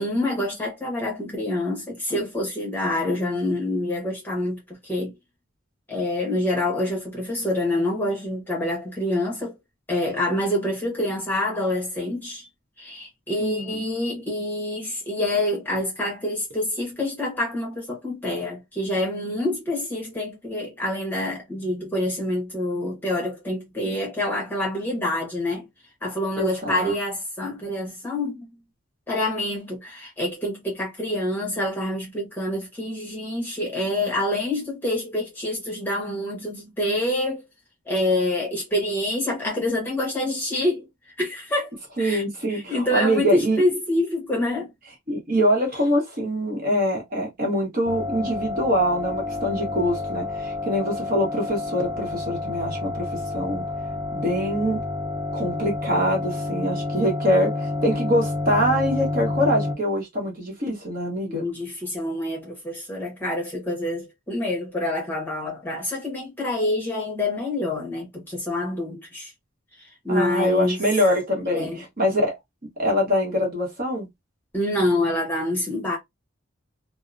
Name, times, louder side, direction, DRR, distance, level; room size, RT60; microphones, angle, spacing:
voice 1, 0.0-5.1 5.9-9.6 9.9-12.5 12.8-25.7 26.0-28.5 29.1-37.4 37.9-42.2 42.5-44.7 61.3-69.3 69.8-70.8 71.5-71.8 74.5-76.0, left 1 dB, 10° left, 0.9 m, -26 dB
voice 2, 13.4-13.8 26.4-26.9 42.0-43.6 45.1-53.6 54.1-54.8 55.3-61.5 70.1-72.4 72.8-74.1, equal, 40° right, 1.0 m, -24 dB
sound 1, 47.8-59.7, left 2 dB, 15° right, 0.5 m, -29 dB
2.7 x 2.0 x 2.5 m
head